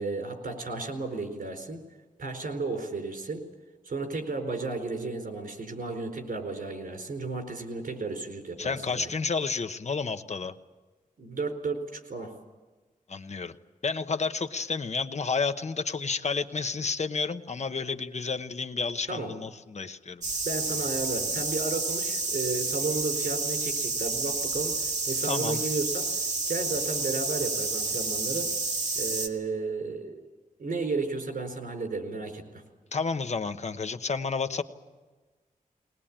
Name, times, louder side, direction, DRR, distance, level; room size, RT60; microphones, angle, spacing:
voice 1, 0.0-1.8 2.2-3.4 3.8-9.1 11.2-12.3 19.1-19.3 20.4-26.1 26.5-28.5 29.0-30.2 30.6-32.4, right 3 dB, 85° right, 4 dB, 4.5 m, -33 dB
voice 2, 8.6-10.5 13.1-13.5 13.8-20.3 25.2-25.6 32.9-34.6, left 4 dB, 50° left, 9 dB, 1.0 m, -31 dB
sound 1, 20.2-29.3, right 3 dB, 55° right, 2.3 m, -30 dB
21.5 x 20.5 x 8.8 m, 1.3 s
wide cardioid pair, 130°, 14 cm